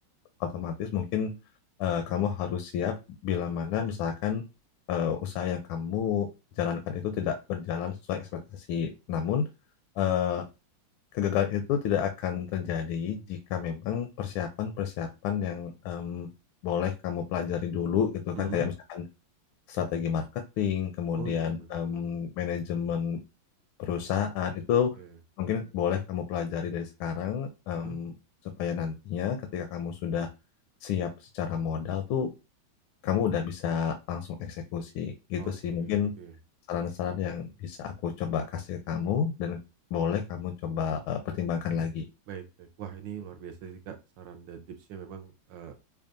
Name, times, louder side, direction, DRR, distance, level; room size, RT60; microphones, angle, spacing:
voice 1, 0.4-1.3 1.8-3.0 3.2-4.4 4.9-6.3 6.6-9.4 10.0-10.4 11.1-16.3 16.6-19.0 19.7-23.2 23.8-24.9 25.4-28.1 28.6-30.3 30.8-32.3 33.0-36.1 36.7-39.6 39.9-42.1, left 8 dB, 85° left, 6 dB, 1.4 m, -30 dB
voice 2, 18.4-18.7 21.2-22.0 25.0-25.2 27.7-28.0 35.4-35.5 35.8-36.4 42.3-45.8, right 8 dB, 75° right, 6 dB, 1.2 m, -42 dB
5.3 x 2.3 x 2.5 m, 0.28 s
omnidirectional pair, 2.2 m